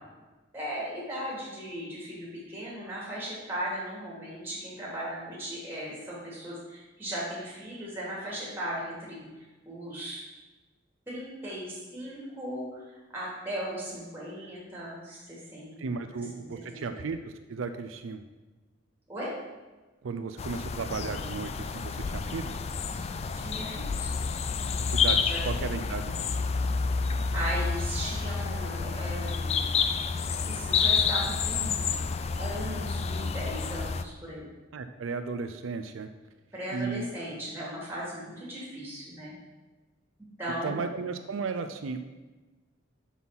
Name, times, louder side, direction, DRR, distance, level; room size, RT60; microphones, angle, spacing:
voice 1, 0.5-9.2 9.6-10.2 11.1-12.8 13.1-15.8 16.4-17.0 19.1-19.3 23.4-24.2 25.2-25.4 27.3-29.8 30.4-32.1 32.4-34.5 36.5-39.3 40.4-40.8, equal, 10° right, -6 dB, 2.8 m, -37 dB
voice 2, 15.8-18.2 20.0-22.7 23.0-23.1 24.9-26.3 34.7-36.1 36.7-37.1 40.6-42.0, right 4 dB, 85° right, 8 dB, 0.5 m, -35 dB
sound 1, 20.4-34.0, left 5 dB, 30° left, 0.3 m, -29 dB
5.7 x 5.6 x 6.1 m, 1.2 s
head